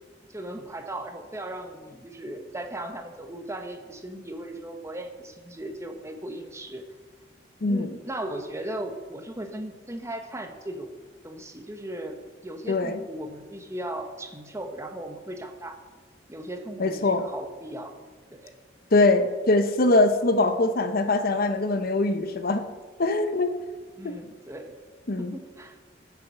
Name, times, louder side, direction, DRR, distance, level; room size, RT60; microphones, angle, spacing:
voice 1, 0.3-6.9 7.6-10.9 11.2-12.2 12.4-15.8 16.3-17.9 18.3-18.5 24.0-24.7 25.2-25.8, right 1 dB, 15° right, 6 dB, 1.0 m, -37 dB
voice 2, 7.6-7.9 12.7-13.0 16.8-17.2 18.9-22.6 23.0-23.5 24.0-24.1 25.1-25.3, left 2 dB, 55° left, 9 dB, 0.8 m, -22 dB
13.5 x 7.0 x 5.7 m, 1.4 s
head